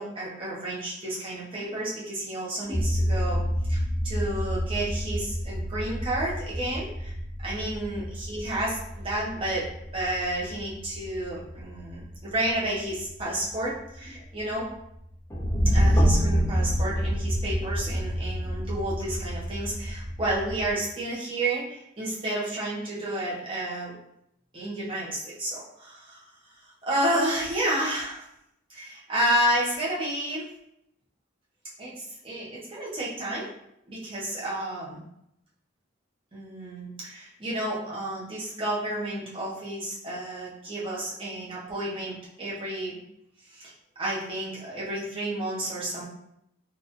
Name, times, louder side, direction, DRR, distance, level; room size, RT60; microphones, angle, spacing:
voice 1, 0.0-3.4 3.7-7.1 7.4-14.7 15.7-23.9 24.5-26.2 26.8-28.2 28.7-30.5 31.8-33.5 33.9-35.0 36.3-43.0 43.5-43.7 44.0-46.0, right 1 dB, 25° right, -7 dB, 1.0 m, -31 dB
sound 1, 2.7-20.7, equal, 15° left, 0.5 m, -29 dB
3.9 x 2.5 x 3.0 m, 0.77 s
head